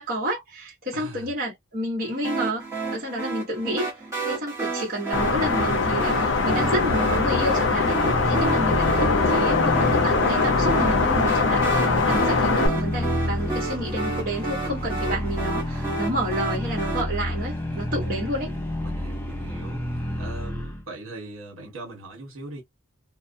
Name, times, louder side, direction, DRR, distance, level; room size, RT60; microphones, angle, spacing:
voice 1, 0.0-2.7 2.9-3.9 4.2-8.0 8.2-18.5, equal, 40° right, 1.2 m, -30 dB
voice 2, 0.9-1.3 17.7-18.1 18.8-22.6, right 2 dB, 75° right, 1.4 m, -40 dB
sound 1, 2.2-17.0, right 3 dB, 15° right, 1.1 m, -31 dB
sound 2, 5.1-12.7, left 4 dB, 55° left, 0.6 m, -22 dB
sound 3, 6.1-20.8, left 1 dB, 10° left, 0.6 m, -30 dB
2.3 x 2.2 x 2.7 m
head